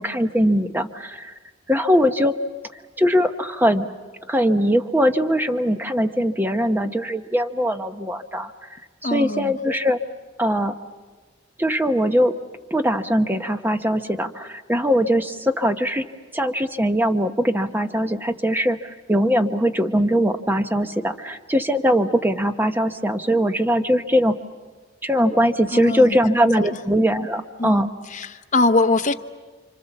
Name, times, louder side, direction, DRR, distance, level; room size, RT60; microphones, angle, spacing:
voice 1, 0.0-1.3 1.7-2.4 2.7-3.9 4.3-8.5 9.0-10.0 10.4-10.7 11.6-12.3 12.7-16.0 16.3-24.4 25.0-27.9, equal, 10° right, 7 dB, 0.9 m, -21 dB
voice 2, 9.0-9.5 25.7-26.3 27.6-29.1, left 3 dB, 40° left, 5 dB, 0.9 m, -22 dB
29.5 x 25.5 x 7.2 m, 1.4 s
head